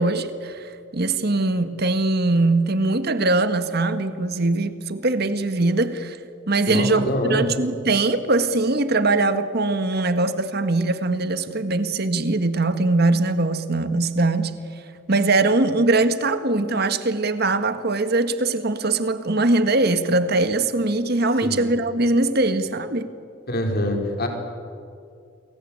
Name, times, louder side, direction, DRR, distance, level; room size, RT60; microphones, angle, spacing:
voice 1, 0.0-6.2 6.5-14.5 15.1-23.1, right 2 dB, 55° right, 1.7 m, -21 dB
voice 2, 6.7-7.5 21.4-21.6 23.5-24.3, left 1 dB, 55° left, 4.8 m, -25 dB
29.0 x 22.0 x 8.9 m
head